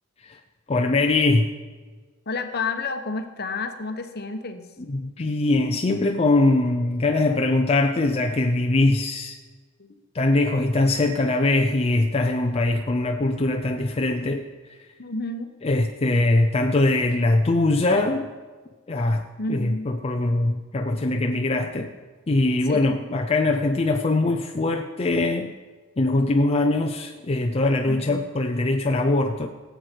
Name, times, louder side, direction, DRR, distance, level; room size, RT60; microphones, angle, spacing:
voice 1, 0.7-1.5 4.9-9.4 10.1-14.4 15.6-18.3 18.9-21.9 22.3-25.6 26.0-29.5, left 2 dB, 30° left, 3 dB, 0.5 m, -22 dB
voice 2, 2.3-4.7 9.8-9.9 15.0-15.5 19.4-19.9 22.7-23.0 27.9-28.3, left 3 dB, 50° left, 7 dB, 1.0 m, -30 dB
17.5 x 8.0 x 4.5 m, 1.4 s
head